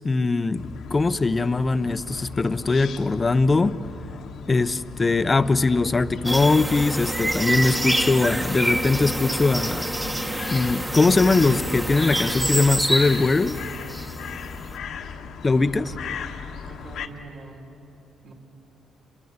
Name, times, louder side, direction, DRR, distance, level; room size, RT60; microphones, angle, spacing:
voice 1, 0.0-3.8 4.5-9.9 10.5-13.6 15.4-15.8, left 3 dB, 30° left, 12 dB, 0.8 m, -21 dB
sound 1, 0.5-17.1, left 5 dB, 75° left, 1.5 m, -37 dB
sound 2, 6.3-14.5, right 1 dB, 15° right, 1.4 m, -27 dB
voice 2, 15.5-16.3 16.6-17.7 18.2-18.3, right 3 dB, 55° right, 2 dB, 3.6 m, -42 dB
29.0 x 23.5 x 8.1 m, 2.8 s
cardioid pair, 90°, 0 cm